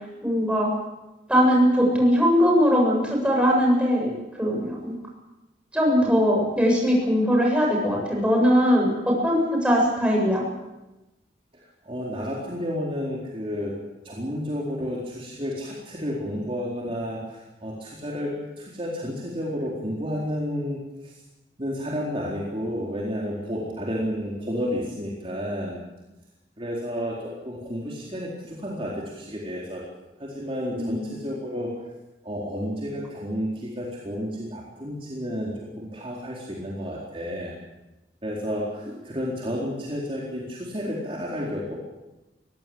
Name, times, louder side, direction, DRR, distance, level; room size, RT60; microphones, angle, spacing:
voice 1, 0.2-0.7 1.3-4.9 5.7-10.4 30.7-31.1, equal, 5° right, -1 dB, 7.9 m, -20 dB
voice 2, 11.5-13.8 14.0-21.1 21.6-25.8 26.6-29.8 30.2-31.7 32.2-37.5 38.2-41.7, equal, 30° right, -4 dB, 4.1 m, -31 dB
24.0 x 17.0 x 8.7 m, 1.0 s
head